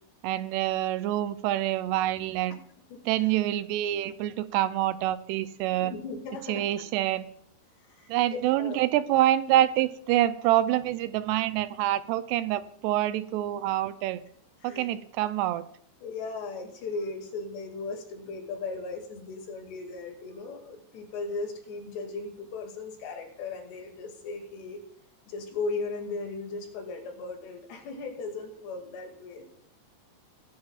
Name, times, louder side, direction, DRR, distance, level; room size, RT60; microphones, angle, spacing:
voice 1, 0.2-2.6 3.1-5.9 6.5-7.3 8.1-14.2 14.6-15.6, right 13 dB, 85° right, 13 dB, 2.6 m, -26 dB
voice 2, 2.9-3.3 5.8-6.6 7.8-8.8 14.6-14.9 16.0-24.8 25.3-29.4, left 3 dB, 75° left, 3 dB, 4.4 m, -37 dB
21.5 x 10.5 x 2.4 m, 0.68 s
omnidirectional pair, 4.9 m